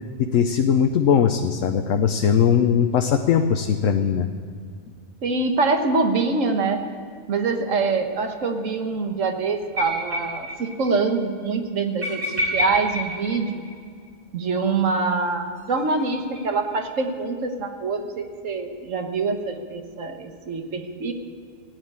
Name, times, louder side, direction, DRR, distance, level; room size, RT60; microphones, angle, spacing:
voice 1, 0.2-4.3, left 7 dB, 70° left, 6 dB, 1.1 m, -20 dB
voice 2, 5.2-6.8 7.3-12.2 12.5-13.5 14.3-21.1, right 4 dB, 65° right, 5 dB, 1.6 m, -24 dB
sound 1, 9.8-10.6 10.8-10.9 11.2-11.3 12.0-14.1 15.6-16.8, left 1 dB, 80° right, 4.2 m, -29 dB
16.0 x 9.4 x 8.6 m, 2.2 s
omnidirectional pair, 1.4 m